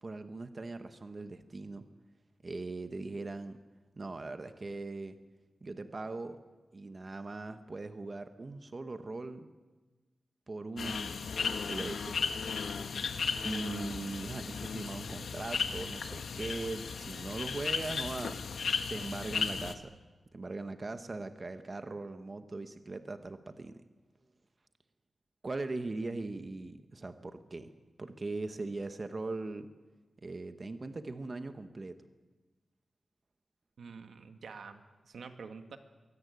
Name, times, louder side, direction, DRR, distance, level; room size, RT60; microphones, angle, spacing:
voice 1, 0.0-1.9 2.4-3.6 4.0-5.2 5.6-6.4 6.7-9.5 10.5-12.2 13.4-18.4 18.9-20.0 20.3-23.8 25.4-27.7 28.0-29.7 30.2-32.0, right 3 dB, 30° right, 9 dB, 1.0 m, -40 dB
sound 1, 10.8-19.7, left 5 dB, 85° left, 1.4 m, -35 dB
voice 2, 33.8-35.8, right 5 dB, 90° right, 7 dB, 1.8 m, -47 dB
23.0 x 17.0 x 9.4 m, 1.3 s
wide cardioid pair, 175°, 0 cm